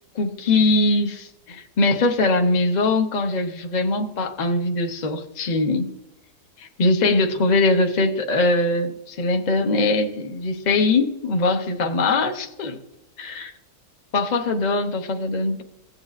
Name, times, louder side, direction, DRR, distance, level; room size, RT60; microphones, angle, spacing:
voice 1, 0.1-6.0 6.6-12.8 13.2-13.5 14.1-15.6, left 2 dB, 40° left, 4 dB, 0.6 m, -22 dB
16.5 x 8.0 x 2.4 m, 0.91 s
omnidirectional pair, 1.9 m